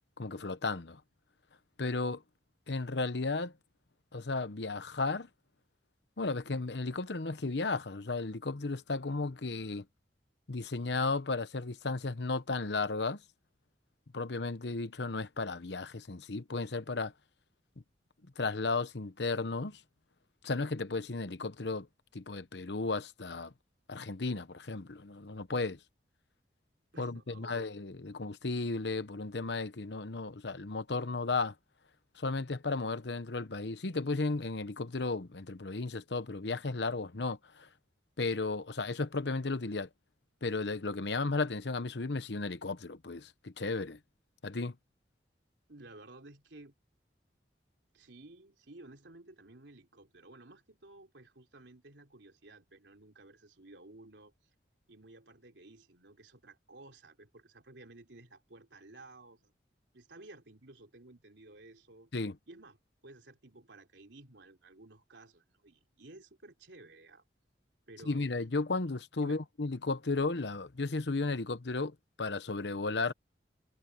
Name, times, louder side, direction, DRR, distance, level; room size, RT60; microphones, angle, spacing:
voice 1, 0.2-1.0 1.8-2.2 2.7-3.5 4.1-5.3 6.2-9.8 10.5-13.2 14.1-17.1 18.4-19.8 20.4-21.9 22.1-23.5 23.9-25.8 27.0-31.5 32.2-37.7 38.2-39.9 40.4-44.0 44.4-44.7 62.1-62.4 68.1-73.1, left 3 dB, 75° left, 1.0 m, -34 dB
voice 2, 26.9-27.7 45.7-46.7 47.9-54.3 54.9-59.5 59.9-62.1 62.5-62.8 63.0-67.2 67.9-68.3 69.2-69.4, right 2 dB, 90° right, 3.4 m, -54 dB
head